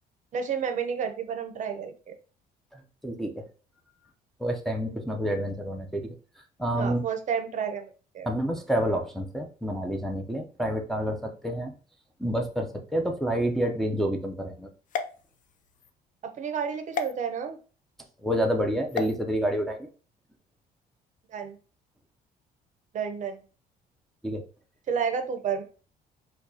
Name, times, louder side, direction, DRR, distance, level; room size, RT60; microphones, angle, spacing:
voice 1, 0.3-2.1 6.7-8.3 16.2-17.6 21.3-21.6 22.9-23.4 24.9-25.6, right 7 dB, 45° right, 6 dB, 0.6 m, -31 dB
voice 2, 2.7-3.4 4.4-6.0 6.6-7.0 8.3-11.7 12.2-14.7 18.2-19.9 24.2-24.4, equal, ahead, 1 dB, 0.5 m, -28 dB
sound 1, 14.9-15.9 16.9-17.1 18.9-19.2, left 6 dB, 50° left, 0.5 m, -34 dB
4.5 x 2.3 x 2.7 m, 0.38 s
cardioid pair, 110°, 17 cm